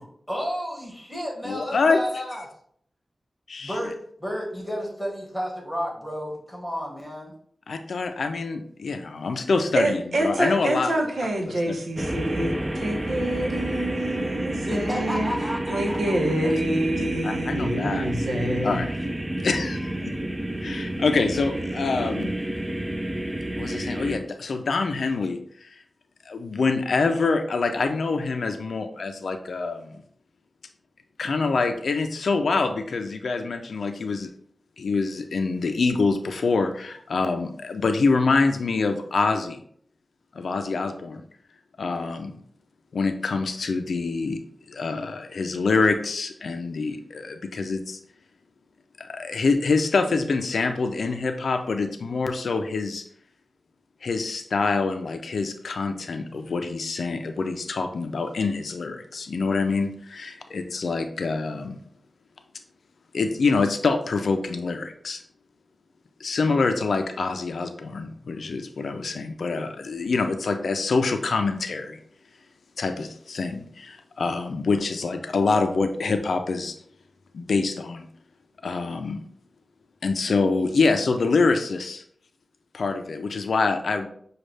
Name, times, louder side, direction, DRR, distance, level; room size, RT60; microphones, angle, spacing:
voice 1, 0.0-2.4 3.6-7.3 14.7-16.5, equal, ahead, -2 dB, 1.6 m, -32 dB
voice 2, 1.4-2.0 3.5-3.8 7.7-10.9 11.5-11.8 17.0-18.9 19.4-20.2 20.6-22.3 23.6-25.4 26.3-30.0 31.2-34.3 34.8-39.6 40.3-41.2 41.8-42.4 42.9-44.4 44.7-48.0 49.0-53.0 54.0-61.8 63.1-65.2 66.2-72.0 72.8-76.7 77.3-78.1 78.6-79.2 80.0-82.0 82.7-84.1, left 4 dB, 90° left, 6 dB, 0.4 m, -25 dB
voice 3, 9.8-15.3 15.7-18.8, right 1 dB, 85° right, 0 dB, 0.8 m, -26 dB
sound 1, 12.0-24.2, right 1 dB, 20° right, 0.5 m, -29 dB
6.3 x 2.3 x 3.2 m, 0.63 s
wide cardioid pair, 90°, 0 cm